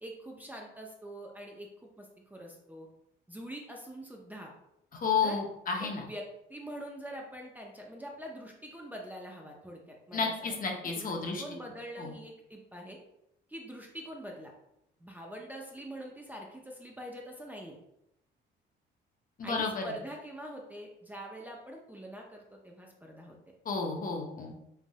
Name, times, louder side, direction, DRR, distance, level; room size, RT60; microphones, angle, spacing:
voice 1, 0.0-2.9 3.3-4.5 5.2-5.4 5.8-6.2 6.5-10.6 10.8-13.0 13.5-14.5 15.0-17.8 19.4-23.4, right 1 dB, 10° right, 0 dB, 0.5 m, -44 dB
voice 2, 5.0-6.0 10.1-11.4 12.0-12.1 19.4-19.8 23.7-24.6, left 5 dB, 45° left, 1 dB, 0.6 m, -31 dB
3.3 x 2.5 x 2.2 m, 0.81 s
cardioid pair, 90°, 20 cm